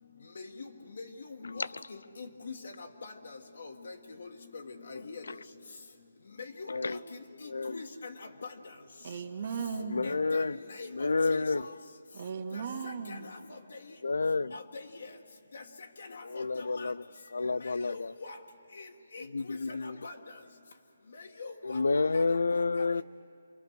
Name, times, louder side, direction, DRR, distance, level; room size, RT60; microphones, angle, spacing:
voice 1, 0.3-0.7 1.0-5.2 6.4-7.0 7.4-8.1 8.4-8.5 10.0-10.4 10.7-11.4 12.5-13.6 13.9-14.0 14.5-15.1 15.5-15.6 16.0-16.9 17.6-18.4 18.7-18.9 19.1-20.1 21.1-21.8 22.1-22.4 22.8-22.9, left 4 dB, 65° left, 1.6 m, -44 dB
voice 2, 1.4-1.8 6.7-7.0 7.4-7.8 9.8-10.6 10.9-11.7 14.0-14.6 16.2-17.0 17.3-18.1 19.2-20.0 21.6-23.0, left 3 dB, 85° left, 0.5 m, -30 dB
voice 3, 9.0-10.1 12.1-13.3, right 5 dB, 50° right, 1.9 m, -37 dB
28.0 x 23.0 x 6.5 m
hypercardioid pair, 170°, 0 cm